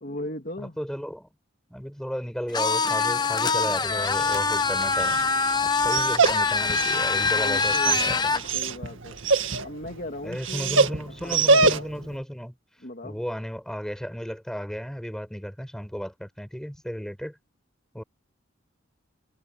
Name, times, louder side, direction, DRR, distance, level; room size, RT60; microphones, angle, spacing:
voice 1, 0.0-0.8 6.1-6.5 7.3-9.2 9.6-11.9 12.8-13.2, left 1 dB, 45° left, 2.6 m, -38 dB
voice 2, 0.6-1.3 1.7-5.2 5.8-8.3 10.2-12.6 13.0-17.4 17.9-18.0, equal, 5° left, 6.4 m, -34 dB
sound 1, 2.5-8.4, left 4 dB, 20° left, 0.7 m, -24 dB
Dog, 3.9-12.1, right 4 dB, 75° right, 2.0 m, -26 dB
head